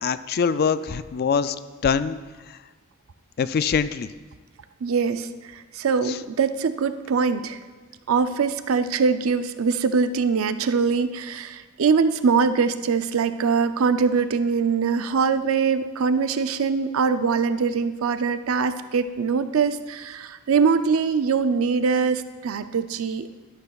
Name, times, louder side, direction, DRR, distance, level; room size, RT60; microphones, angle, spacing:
voice 1, 0.0-1.6 1.8-2.2 2.5-2.6 3.4-4.1 6.1-6.2, left 6 dB, 45° left, 14 dB, 0.3 m, -23 dB
voice 2, 4.8-7.6 8.1-23.3, right 5 dB, 75° right, 11 dB, 0.5 m, -23 dB
12.0 x 11.5 x 2.3 m, 1.3 s
head